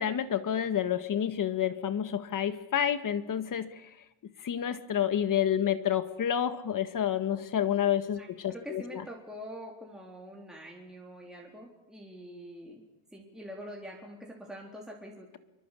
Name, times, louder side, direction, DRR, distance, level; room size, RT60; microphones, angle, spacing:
voice 1, 0.0-3.9 4.4-8.8, left 9 dB, 40° left, 11 dB, 1.8 m, -29 dB
voice 2, 8.2-12.8 13.1-15.4, equal, ahead, -2 dB, 3.8 m, -45 dB
26.5 x 23.5 x 8.4 m, 0.91 s
cardioid pair, 160°, 47 cm